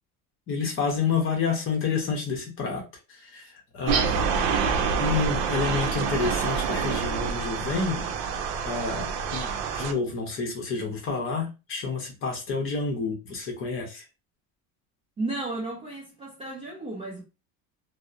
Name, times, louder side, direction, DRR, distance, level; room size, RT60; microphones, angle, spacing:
voice 1, 0.5-2.8 3.1-4.2 5.0-8.1 8.6-14.0, left 5 dB, 35° left, 0.7 m, -29 dB
sound 1, 3.9-9.9, right 6 dB, 75° right, 0.6 m, -27 dB
voice 2, 15.2-17.2, right 2 dB, 15° right, 0.3 m, -33 dB
2.7 x 2.0 x 2.3 m
cardioid pair, 175°, 38 cm